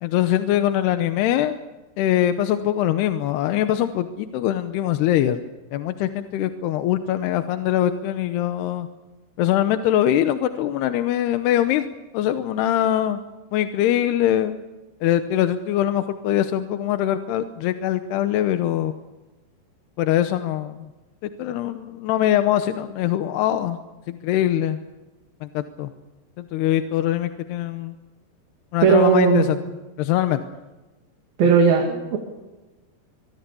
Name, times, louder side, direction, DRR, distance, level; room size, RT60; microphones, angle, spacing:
voice 1, 0.0-1.6 2.0-5.4 5.7-8.9 9.4-11.9 12.1-13.2 13.5-14.6 15.0-19.0 20.0-20.9 21.2-23.8 24.1-24.8 25.4-25.9 26.4-27.9 28.7-29.6 30.0-30.4, left 12 dB, 75° left, 9 dB, 2.8 m, -22 dB
voice 2, 28.8-29.5 31.4-32.2, right 6 dB, 60° right, 2 dB, 4.0 m, -17 dB
24.5 x 22.0 x 7.0 m, 1.1 s
omnidirectional pair, 5.1 m